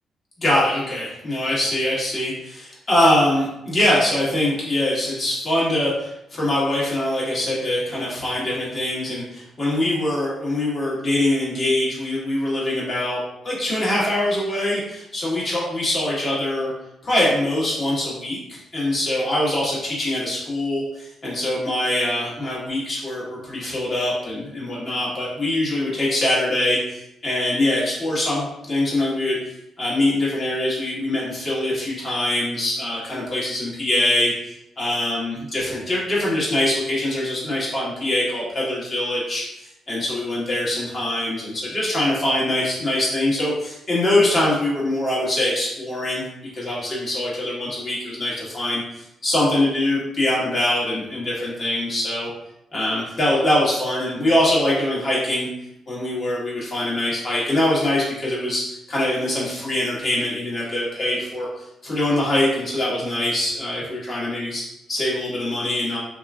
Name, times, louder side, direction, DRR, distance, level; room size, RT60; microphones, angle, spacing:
voice 1, 0.4-16.7 17.0-29.4 29.8-34.3 34.8-46.2 46.5-48.8 49.2-52.3 52.7-55.5 55.9-61.5 61.8-66.0, left 1 dB, 45° left, -6 dB, 1.3 m, -23 dB
2.9 x 2.5 x 2.3 m, 0.85 s
cardioid pair, 75°, 0 cm